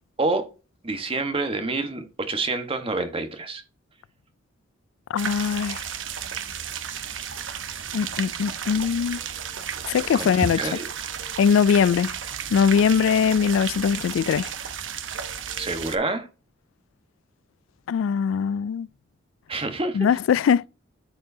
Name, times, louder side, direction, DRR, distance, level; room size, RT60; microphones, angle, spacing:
voice 1, 0.2-0.5 0.8-3.6 10.1-10.9 15.6-16.3 19.5-20.1, right 2 dB, 30° right, 1.3 m, -27 dB
voice 2, 5.1-5.8 7.9-9.2 9.9-10.6 11.4-12.2 12.5-14.5 17.9-18.9 19.9-20.7, left 7 dB, 85° left, 0.3 m, -21 dB
sound 1, 5.2-16.0, right 8 dB, 80° right, 1.0 m, -33 dB
13.0 x 4.7 x 2.7 m
head